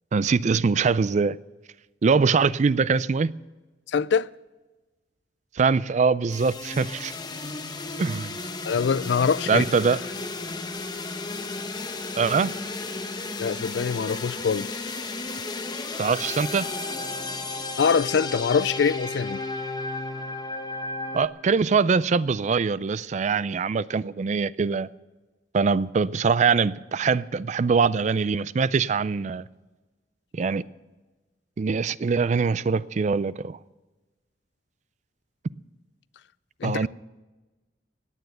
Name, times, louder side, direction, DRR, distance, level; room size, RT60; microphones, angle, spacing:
voice 1, 0.1-1.4 2.0-3.3 5.6-7.1 8.0-8.4 9.5-10.0 12.2-12.5 16.0-16.7 21.1-24.9 25.5-29.4 30.3-30.6 31.6-33.6 36.6-36.9, right 5 dB, 40° right, 0.4 m, -23 dB
voice 2, 3.9-4.3 8.7-9.6 13.4-14.9 17.8-19.4 36.6-36.9, left 6 dB, 70° left, 0.4 m, -24 dB
sound 1, 6.3-21.3, left 3 dB, 25° left, 1.0 m, -33 dB
17.0 x 9.2 x 7.9 m
head